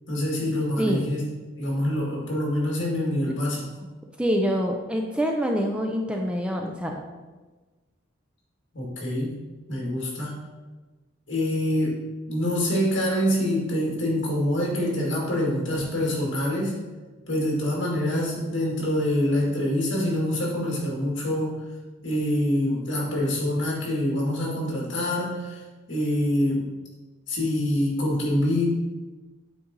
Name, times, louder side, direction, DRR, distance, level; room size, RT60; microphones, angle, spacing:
voice 1, 0.1-1.2 1.6-3.6 8.7-9.4 9.7-10.4 11.3-12.0 12.3-16.8 17.3-21.6 22.0-25.6 25.9-26.7 27.3-28.7, left 1 dB, 65° left, -3 dB, 2.2 m, -25 dB
voice 2, 4.2-7.1, equal, 5° right, 2 dB, 0.4 m, -25 dB
8.6 x 4.0 x 3.9 m, 1.2 s
head